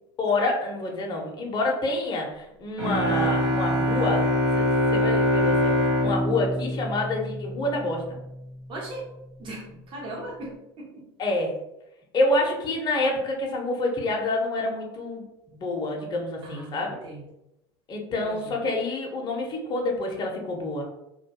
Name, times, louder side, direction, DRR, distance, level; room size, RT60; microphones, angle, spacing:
voice 1, 0.2-4.3 4.6-5.8 6.0-8.2 11.2-11.6 12.1-15.3 15.5-17.0 17.9-20.8, left 2 dB, 30° left, 0 dB, 0.6 m, -27 dB
Bowed string instrument, 2.8-7.9, left 1 dB, 80° right, 1.1 m, -24 dB
voice 2, 8.7-9.0 9.4-11.0 16.4-16.8 17.0-17.2 18.1-18.5, right 2 dB, 35° right, -3 dB, 0.7 m, -38 dB
2.2 x 2.2 x 2.7 m, 0.87 s
hypercardioid pair, 85°, 15 cm